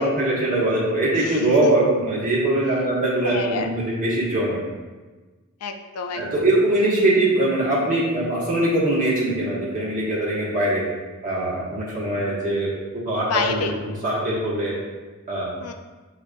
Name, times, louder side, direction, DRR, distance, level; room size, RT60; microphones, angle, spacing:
voice 1, 0.0-4.6 6.1-10.8 11.2-12.7 13.0-14.7 15.3-15.5, right 1 dB, 40° right, -6 dB, 1.2 m, -22 dB
voice 2, 1.2-1.7 3.2-3.7 5.6-6.4 13.3-13.7 15.6-15.7, left 5 dB, 85° left, 5 dB, 0.4 m, -28 dB
6.6 x 2.4 x 2.4 m, 1.3 s
head